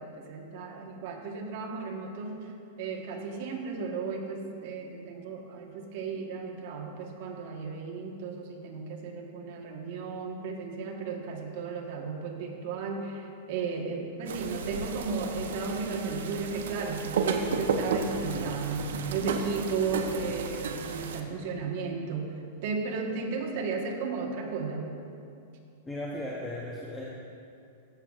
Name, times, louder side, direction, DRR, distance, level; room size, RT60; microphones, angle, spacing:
voice 1, 0.0-2.5 2.8-18.8 19.1-22.3 22.6-24.9, right 4 dB, 45° right, 1 dB, 1.2 m, -34 dB
sound 1, 14.3-21.2, right 5 dB, 80° right, 0.7 m, -33 dB
voice 2, 25.9-27.0, left 1 dB, 10° left, -4 dB, 0.7 m, -36 dB
13.5 x 7.8 x 2.4 m, 2.6 s
supercardioid pair, 160°, 0 cm